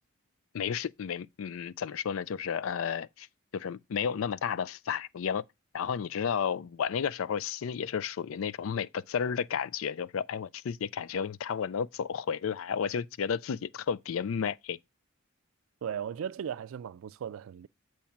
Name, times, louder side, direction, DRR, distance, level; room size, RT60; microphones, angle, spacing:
voice 1, 0.5-3.3 3.5-5.4 5.7-14.8, left 7 dB, 80° left, 0.4 m, -32 dB
voice 2, 15.8-17.7, right 8 dB, 90° right, 0.3 m, -37 dB
8.5 x 3.1 x 5.7 m
head